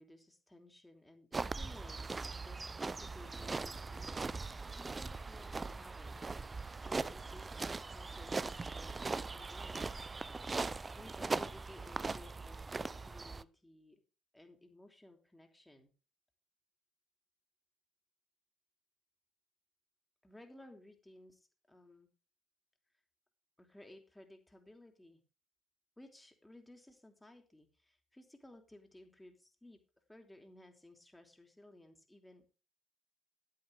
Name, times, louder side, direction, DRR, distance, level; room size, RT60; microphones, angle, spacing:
voice 1, 0.0-10.6 10.9-14.0 14.3-15.9 20.2-22.1 23.6-25.2 26.0-29.8 30.1-32.5, left 1 dB, 10° left, 4 dB, 3.0 m, -58 dB
sound 1, 1.3-13.4, right 3 dB, 25° right, 0.6 m, -40 dB
11.5 x 10.5 x 3.5 m, 0.34 s
figure-of-eight pair, 45°, 0 cm